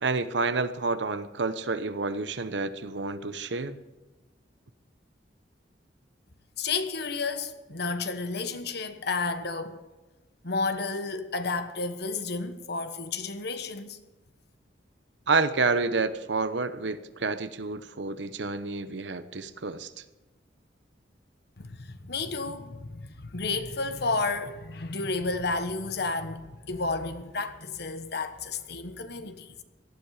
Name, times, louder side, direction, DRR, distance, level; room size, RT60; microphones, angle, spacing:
voice 1, 0.0-3.8 15.3-19.9, right 3 dB, 75° right, 0.9 m, -29 dB
voice 2, 6.6-9.8 10.4-14.0 21.6-29.6, left 3 dB, 65° left, 1.3 m, -31 dB
18.0 x 13.0 x 4.9 m
head